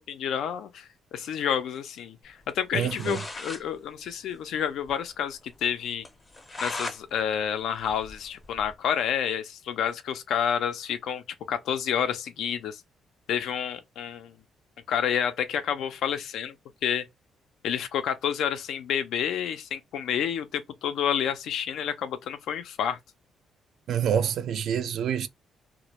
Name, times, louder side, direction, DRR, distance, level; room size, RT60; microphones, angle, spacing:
voice 1, 0.0-6.0 6.6-12.8 13.3-14.3 14.9-16.5 16.8-17.1 17.6-23.0, left 8 dB, 75° left, 0.4 m, -29 dB
sound 1, 2.6-2.7 2.8-3.6 4.0-4.1 4.3-4.4 4.8-4.9 5.3-5.4 6.0-7.0 7.4-8.7, left 2 dB, 20° left, 0.6 m, -38 dB
voice 2, 2.7-3.2 23.9-25.3, right 8 dB, 70° right, 0.3 m, -27 dB
2.1 x 2.0 x 2.8 m
cardioid pair, 90°, 0 cm